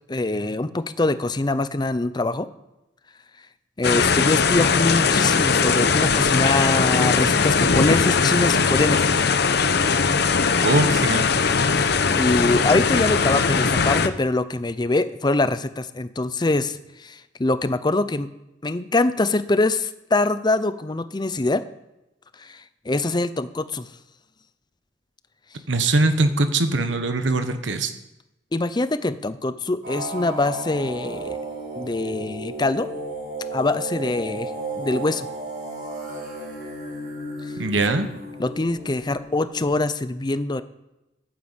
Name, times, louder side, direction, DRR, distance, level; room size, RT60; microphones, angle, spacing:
voice 1, 0.1-2.5 3.8-9.1 11.7-18.3 18.6-21.6 22.4-23.9 28.5-31.4 31.8-32.9 33.5-34.5 34.8-35.3 38.4-40.6, left 2 dB, 25° left, 13 dB, 0.5 m, -24 dB
sound 1, 3.8-14.1, left 5 dB, 60° left, 0.8 m, -20 dB
voice 2, 10.6-11.3 25.7-27.9 37.6-38.1, right 2 dB, 85° right, 8 dB, 1.1 m, -21 dB
sound 2, 29.8-39.6, right 2 dB, 65° right, 5.3 m, -34 dB
11.5 x 9.4 x 7.3 m, 0.94 s
head